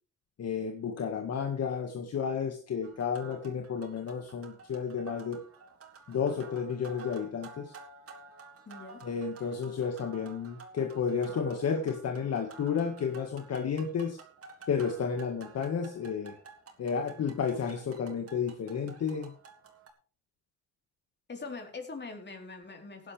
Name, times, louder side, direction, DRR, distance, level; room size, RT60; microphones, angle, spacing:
voice 1, 0.4-5.4 6.1-7.7 9.0-14.2 14.7-16.3 16.8-19.3, left 6 dB, 55° left, 4 dB, 1.9 m, -32 dB
sound 1, 2.8-19.9, right 4 dB, 50° right, 3.6 m, -52 dB
voice 2, 8.7-9.0 21.3-23.1, left 3 dB, 35° left, 3 dB, 4.1 m, -42 dB
16.5 x 11.0 x 3.5 m, 0.40 s
cardioid pair, 90°, 30 cm